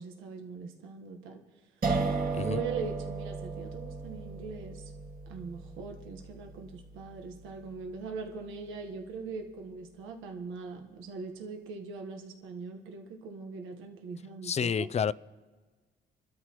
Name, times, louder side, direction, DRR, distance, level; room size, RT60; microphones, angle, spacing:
voice 1, 0.0-1.4 2.4-4.9 5.3-14.9, right 5 dB, 90° right, 1.3 m, -41 dB
sound 1, 1.8-8.8, right 4 dB, 45° right, 1.4 m, -36 dB
voice 2, 14.4-15.1, left 7 dB, 35° left, 0.4 m, -29 dB
27.0 x 12.5 x 3.0 m
cardioid pair, 90°, 20 cm